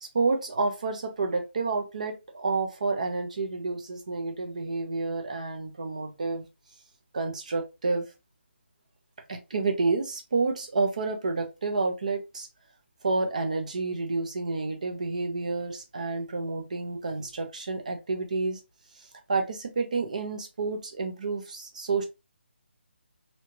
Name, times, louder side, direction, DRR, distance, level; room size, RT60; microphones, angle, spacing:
voice 1, 0.0-6.5 7.1-8.0 9.3-12.5 13.0-18.6 19.0-22.1, right 3 dB, 35° right, 0.7 m, -29 dB
3.2 x 2.9 x 2.6 m
hypercardioid pair, 175°, 6 cm